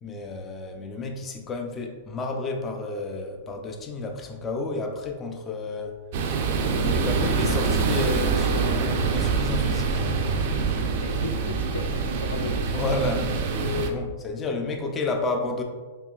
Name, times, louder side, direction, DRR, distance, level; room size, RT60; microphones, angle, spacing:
voice 1, 0.0-6.0 6.7-10.0 12.7-15.6, left 3 dB, 20° left, 4 dB, 0.5 m, -31 dB
sound 1, 6.1-13.9, right 5 dB, 55° right, 0.5 m, -25 dB
voice 2, 6.6-7.0 10.5-12.7, left 3 dB, 90° left, 5 dB, 0.5 m, -36 dB
4.5 x 3.1 x 2.4 m, 1.4 s
hypercardioid pair, 135°, 0 cm